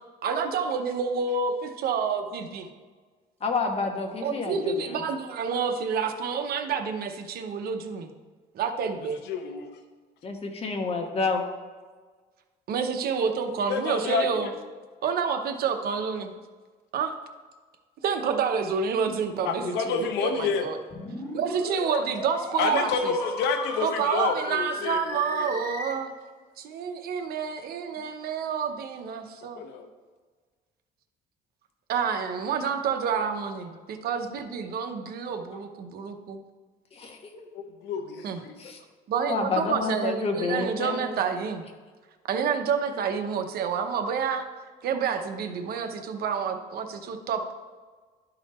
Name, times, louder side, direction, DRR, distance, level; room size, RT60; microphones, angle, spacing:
voice 1, 0.2-2.7 4.2-8.1 8.5-9.2 12.7-14.5 15.0-16.3 16.9-17.1 18.0-20.8 21.3-23.1 23.8-26.1 26.6-29.6 31.9-36.4 38.2-38.4 39.1-41.6 42.3-44.4 44.8-47.5, right 6 dB, 65° right, 6 dB, 0.8 m, -28 dB
voice 2, 3.4-5.0 10.2-11.4 36.9-37.5 38.6-38.8 39.3-41.0, left 4 dB, 35° left, 3 dB, 1.3 m, -29 dB
voice 3, 9.3-9.7 13.7-14.6 19.4-20.7 22.6-25.6 29.5-29.9 37.5-38.5, left 5 dB, 85° left, 6 dB, 0.9 m, -29 dB
sound 1, 20.9-25.9, left 1 dB, 20° left, 1.6 m, -36 dB
11.5 x 4.0 x 4.2 m, 1.4 s
cardioid pair, 110°, 17 cm